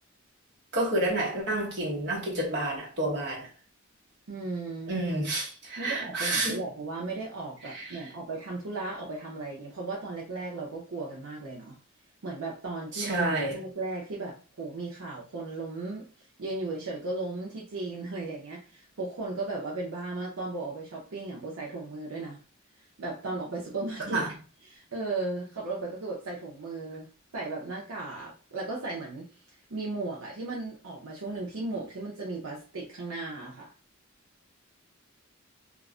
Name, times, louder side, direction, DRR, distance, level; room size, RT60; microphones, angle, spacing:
voice 1, 0.7-3.5 4.9-6.6 7.7-7.9 12.9-13.6 24.1-24.3, right 2 dB, 55° right, 1.0 m, -29 dB
voice 2, 4.3-4.9 5.8-11.8 12.2-16.1 16.4-22.4 23.0-24.2 24.6-27.1 27.3-29.3 29.7-33.7, right 3 dB, 75° right, 0.6 m, -36 dB
2.3 x 2.0 x 3.6 m
head